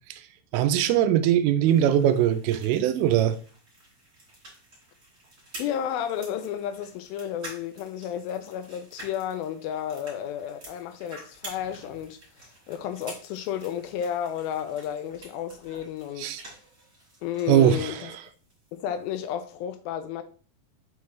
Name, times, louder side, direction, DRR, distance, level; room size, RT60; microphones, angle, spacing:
voice 1, 0.5-3.4 16.2-16.4 17.5-18.0, right 10 dB, 85° right, 2.3 m, -21 dB
sound 1, 1.7-17.9 18.2-19.3, right 1 dB, 20° right, 2.8 m, -48 dB
voice 2, 5.6-16.4 17.2-18.1 18.7-20.2, left 9 dB, 80° left, 2.2 m, -32 dB
6.4 x 4.7 x 3.1 m
omnidirectional pair, 4.4 m